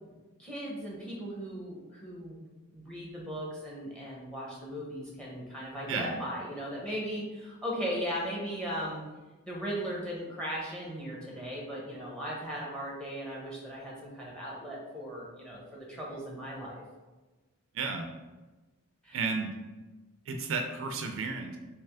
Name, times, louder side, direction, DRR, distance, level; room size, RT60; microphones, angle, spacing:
voice 1, 0.4-2.4 2.7-9.0 9.4-16.8 19.0-19.2, equal, 5° left, -4 dB, 0.8 m, -37 dB
voice 2, 17.7-18.1 19.1-19.5 20.3-21.6, right 4 dB, 60° right, 5 dB, 0.4 m, -32 dB
3.3 x 3.0 x 3.4 m, 1.2 s
head